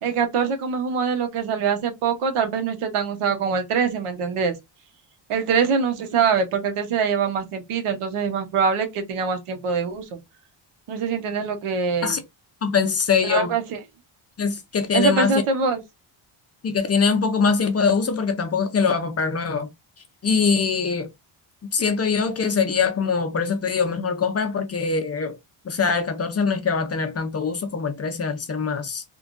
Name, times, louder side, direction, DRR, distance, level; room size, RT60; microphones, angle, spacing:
voice 1, 0.0-4.5 5.3-10.2 10.9-12.2 13.2-13.8 14.9-15.8, right 6 dB, 80° right, 1.0 m, -24 dB
voice 2, 12.6-13.5 14.4-15.3 16.6-19.7 20.2-21.1 21.7-25.4 25.6-29.0, left 5 dB, 30° left, 0.5 m, -23 dB
3.4 x 2.2 x 2.5 m
wide cardioid pair, 150°, 50 cm